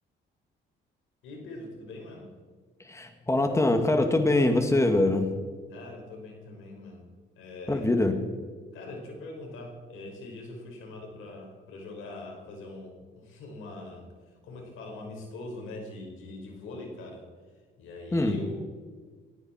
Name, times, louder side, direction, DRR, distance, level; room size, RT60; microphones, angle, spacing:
voice 1, 1.2-2.3 5.7-7.0 7.4-7.9 8.7-14.1 14.4-17.2 17.8-18.6, left 2 dB, 90° left, 2 dB, 5.0 m, -42 dB
voice 2, 2.8-5.3 7.7-8.2 18.1-18.4, left 2 dB, 15° left, 5 dB, 2.1 m, -23 dB
18.5 x 16.0 x 4.5 m, 1.5 s
cardioid pair, 90°, 20 cm